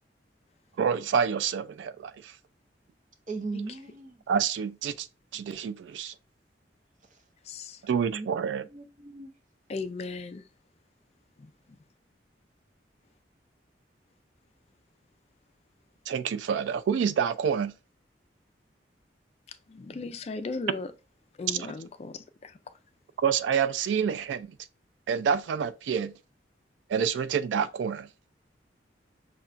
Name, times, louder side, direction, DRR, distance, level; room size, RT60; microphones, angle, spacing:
voice 1, 0.8-2.3 4.3-5.1 5.3-6.1 7.8-8.6 16.1-17.7 21.5-21.6 23.2-24.5 25.1-26.1 26.9-28.1, right 7 dB, 90° right, 0.3 m, -27 dB
voice 2, 3.3-4.2 7.1-7.2 8.0-8.3 8.7-9.3, right 3 dB, 45° right, 0.7 m, -38 dB
voice 3, 7.4-7.8 9.7-10.4 11.4-11.8 19.5-20.9 21.4-22.6, left 3 dB, 35° left, 0.3 m, -37 dB
5.6 x 2.3 x 2.5 m
head